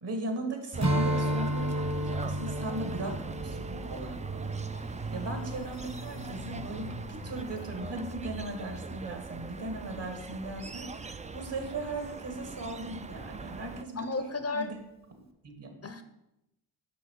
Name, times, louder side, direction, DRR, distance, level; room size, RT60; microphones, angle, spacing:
voice 1, 0.0-14.3 14.5-14.8 15.4-15.7, right 2 dB, 60° right, 4 dB, 2.1 m, -38 dB
sound 1, 0.7-13.8, right 4 dB, 15° right, 0.3 m, -40 dB
Strum, 0.8-5.5, equal, 35° right, 1.1 m, -32 dB
sound 2, 3.9-7.7, left 6 dB, 85° left, 0.8 m, -50 dB
voice 2, 13.9-14.7 15.8-16.0, left 3 dB, 30° left, 10 dB, 0.7 m, -33 dB
7.1 x 5.7 x 4.8 m, 0.88 s
supercardioid pair, 50°, 48 cm